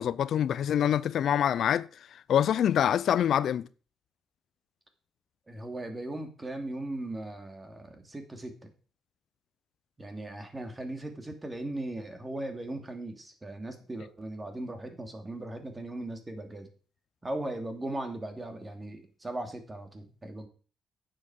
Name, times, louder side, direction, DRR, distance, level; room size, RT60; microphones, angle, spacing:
voice 1, 0.0-3.7, left 9 dB, 65° left, 0.5 m, -26 dB
voice 2, 5.5-8.7 10.0-16.7 17.2-20.5, right 1 dB, 20° right, 2.8 m, -38 dB
9.4 x 7.8 x 6.4 m
cardioid pair, 90°, 0 cm